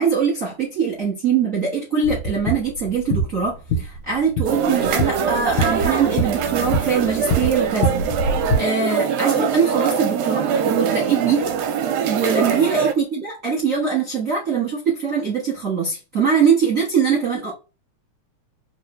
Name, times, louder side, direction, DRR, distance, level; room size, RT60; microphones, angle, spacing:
voice 1, 0.0-8.0 8.3-11.5 12.1-17.5, right 6 dB, 60° right, 0.8 m, -22 dB
sound 1, 2.0-8.6, equal, 75° left, 2.3 m, -25 dB
sound 2, 4.5-12.9, right 7 dB, 80° right, 1.5 m, -23 dB
4.8 x 2.3 x 3.1 m
omnidirectional pair, 3.4 m